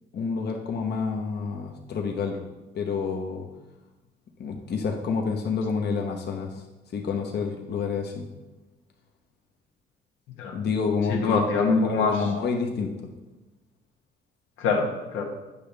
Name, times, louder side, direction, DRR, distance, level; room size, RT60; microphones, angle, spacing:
voice 1, 0.1-2.4 2.7-3.5 4.4-6.6 6.9-8.3 10.5-11.5 11.8-12.9, left 5 dB, 55° left, 2 dB, 0.9 m, -28 dB
voice 2, 11.1-12.1 14.6-15.2, left 4 dB, 90° left, 1 dB, 1.2 m, -24 dB
8.5 x 5.7 x 3.4 m, 1.1 s
cardioid pair, 90°, 20 cm